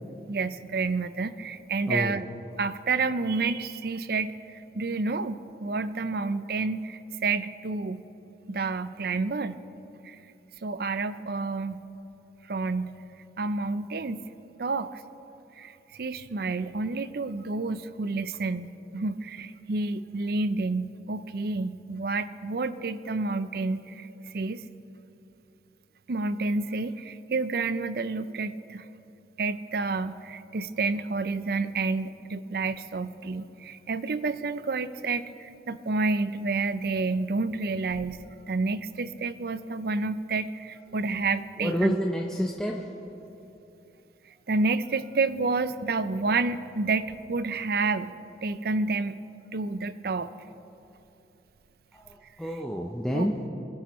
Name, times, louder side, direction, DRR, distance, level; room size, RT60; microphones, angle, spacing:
voice 1, 0.3-2.2 2.6-8.0 8.5-9.6 10.0-10.2 10.6-11.8 12.5-13.0 13.4-14.3 14.6-15.0 15.6-24.6 26.1-28.9 29.4-42.0 44.5-48.1 48.4-49.2 49.5-50.3 53.1-53.3, right 3 dB, 55° right, 14 dB, 0.5 m, -29 dB
voice 2, 1.9-2.2 41.6-42.9 51.9-53.4, equal, 5° left, -1 dB, 0.6 m, -29 dB
22.0 x 11.5 x 3.1 m, 2.9 s
head